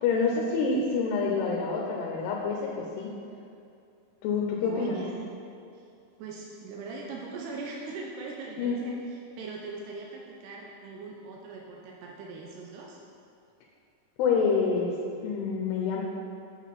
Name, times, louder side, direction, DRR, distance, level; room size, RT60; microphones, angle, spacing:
voice 1, 0.0-3.1 4.2-4.9 8.6-8.8 14.2-14.9 15.2-16.0, left 5 dB, 90° left, -1 dB, 2.9 m, -27 dB
voice 2, 4.6-5.2 5.7-5.8 6.2-8.9 9.4-13.0, right 4 dB, 90° right, -2 dB, 2.9 m, -40 dB
8.7 x 6.3 x 4.1 m, 2.5 s
omnidirectional pair, 4.6 m